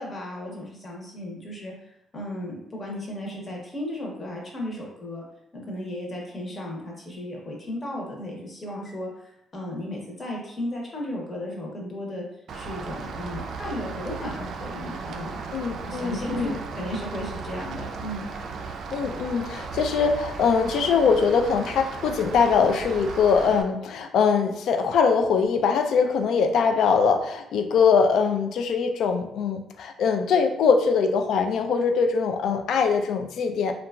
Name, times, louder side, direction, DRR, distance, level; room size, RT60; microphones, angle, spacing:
voice 1, 0.0-5.3 5.5-12.2 12.5-15.4 15.8-18.2, left 1 dB, 35° left, -2 dB, 0.9 m, -35 dB
Rain, 12.5-23.6, right 4 dB, 65° right, 0.3 m, -36 dB
voice 2, 15.5-16.5 18.9-33.7, left 5 dB, 75° left, 5 dB, 0.3 m, -22 dB
2.9 x 2.3 x 2.3 m, 0.78 s
cardioid pair, 90°, 0 cm